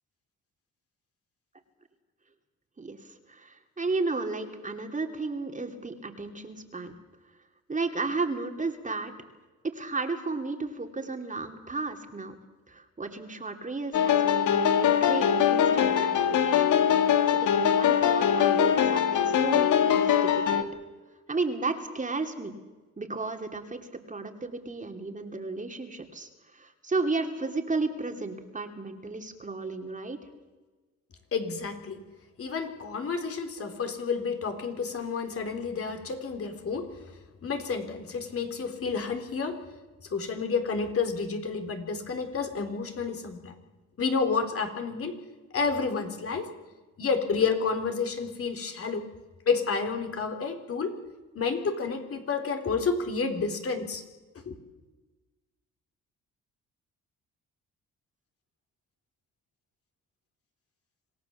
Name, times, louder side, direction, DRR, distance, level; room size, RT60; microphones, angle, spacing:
voice 1, 2.8-6.9 7.7-9.1 9.6-12.3 12.7-16.1 16.4-20.7 21.3-22.5 23.0-30.2, right 3 dB, 25° right, 5 dB, 2.8 m, -33 dB
sound 1, 13.9-20.6, left 8 dB, 80° left, 1.9 m, -22 dB
voice 2, 31.3-32.0 32.4-36.9 37.4-39.6 40.0-43.5 44.0-45.2 45.5-46.5 47.0-49.0 49.5-51.0 51.4-54.0 54.5-54.6, left 5 dB, 50° left, 6 dB, 3.8 m, -30 dB
26.5 x 17.5 x 7.2 m, 1.2 s
cardioid pair, 90°, 30 cm